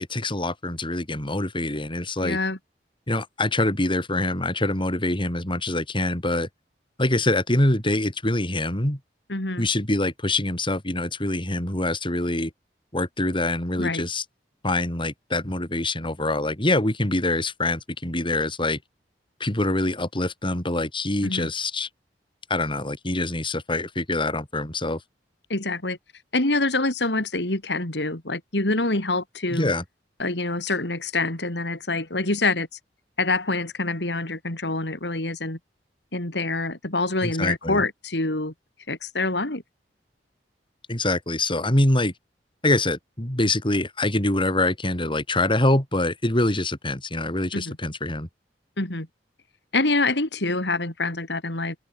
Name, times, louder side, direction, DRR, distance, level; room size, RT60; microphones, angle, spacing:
voice 1, 0.0-2.4 3.1-6.5 7.0-9.0 9.6-12.5 12.9-14.2 14.6-18.8 19.4-21.9 22.5-25.0 29.5-29.8 37.2-37.8 40.9-42.1 42.6-48.3, left 2 dB, 30° left, 5.0 m, -25 dB
voice 2, 2.2-2.6 9.3-9.7 13.8-14.0 21.2-21.5 25.5-26.0 26.3-29.7 30.2-32.7 33.2-35.6 36.1-38.5 38.9-39.6 47.5-47.8 48.8-49.1 49.7-51.8, left 2 dB, 75° left, 3.8 m, -26 dB
head